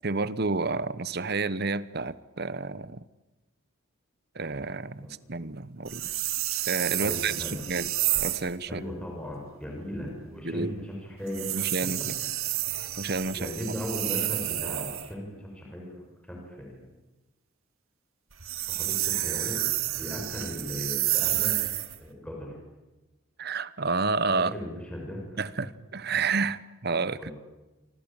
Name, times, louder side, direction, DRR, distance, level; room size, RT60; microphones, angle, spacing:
voice 1, 0.0-3.0 4.3-6.0 6.7-7.9 8.2-8.8 10.4-10.8 11.5-12.1 13.0-13.7 23.4-24.5 25.4-27.3, right 4 dB, 45° right, 1.0 m, -30 dB
sound 1, 5.9-8.5 11.3-15.1 18.3-22.0, right 14 dB, 75° right, 2.0 m, -30 dB
voice 2, 7.0-7.6 8.7-11.9 13.3-16.0 16.2-16.9 18.7-19.6 20.0-21.5 22.0-22.6 24.4-25.4 27.1-27.3, equal, 5° left, 6.4 m, -37 dB
27.5 x 24.5 x 8.9 m
head